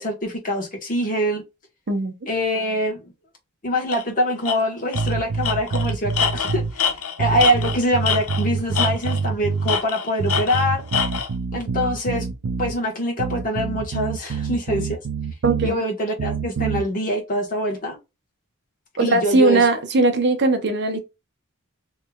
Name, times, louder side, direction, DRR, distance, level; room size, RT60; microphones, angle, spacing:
voice 1, 0.0-1.4 2.3-3.0 3.6-6.9 7.2-10.8 11.5-12.3 12.6-15.0 15.6-18.0 19.0-19.7, equal, 40° left, 1.4 m, -24 dB
Tools, 3.9-4.0 4.4-4.6 4.9-5.1 5.4-8.5 8.8-9.3 9.7-11.3, left 7 dB, 70° left, 0.6 m, -25 dB
sound 1, 4.9-6.7 7.2-9.8 10.2-12.8 13.2-15.7 16.2-16.8, right 5 dB, 75° right, 0.5 m, -26 dB
voice 2, 15.4-15.8 19.0-21.0, right 2 dB, 55° right, 0.8 m, -19 dB
3.3 x 3.2 x 2.3 m
head